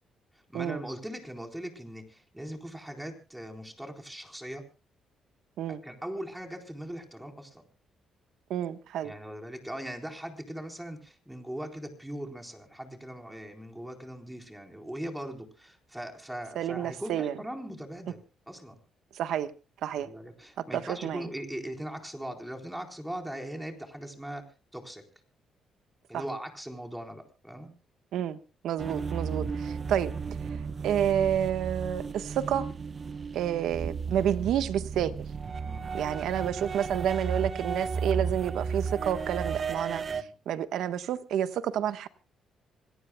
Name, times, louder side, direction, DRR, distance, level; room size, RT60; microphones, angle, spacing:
voice 1, 0.5-4.7 5.8-7.6 9.0-18.8 19.9-24.4 24.7-25.0 26.1-27.8 35.7-35.9 40.1-40.3, right 1 dB, 5° right, 3 dB, 4.0 m, -40 dB
voice 2, 8.5-9.1 16.5-17.3 19.1-19.5 19.8-20.1 20.7-21.2 26.1-26.2 28.1-28.4 28.6-30.1 30.8-32.7 33.3-35.1 35.9-42.1, right 10 dB, 80° right, 11 dB, 1.2 m, -29 dB
sound 1, 28.8-40.2, right 5 dB, 40° right, 0.8 m, -34 dB
26.5 x 17.5 x 2.2 m, 0.33 s
cardioid pair, 90°, 0 cm